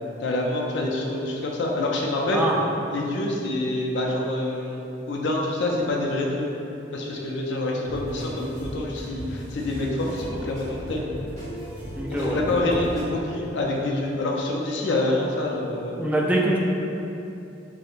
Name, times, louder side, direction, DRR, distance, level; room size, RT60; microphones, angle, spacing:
voice 1, 0.2-2.5 2.9-4.8 5.1-6.5 6.9-11.1 12.1-16.0, left 2 dB, 70° left, -1 dB, 0.4 m, -26 dB
sound 1, 7.8-13.0, equal, 40° right, 1.4 m, -36 dB
voice 2, 12.0-12.8 16.0-16.6, right 1 dB, 10° right, -3 dB, 0.3 m, -24 dB
4.4 x 2.1 x 2.5 m, 2.8 s
head